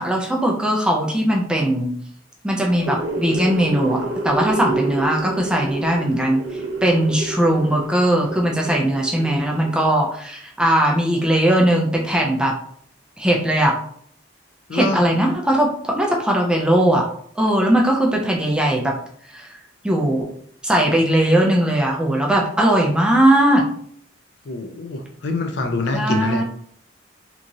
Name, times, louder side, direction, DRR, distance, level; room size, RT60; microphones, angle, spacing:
voice 1, 0.0-1.9 2.4-6.4 6.8-12.5 13.2-13.8 14.7-17.1 17.4-18.9 19.3-19.5 19.8-20.3 20.6-23.6 25.9-26.4, right 1 dB, 5° right, -1 dB, 0.3 m, -19 dB
sound 1, 2.6-9.9, right 2 dB, 75° right, 0.5 m, -29 dB
voice 2, 14.7-15.0 24.5-26.4, left 3 dB, 60° left, 5 dB, 0.4 m, -25 dB
2.9 x 2.4 x 2.6 m, 0.62 s
head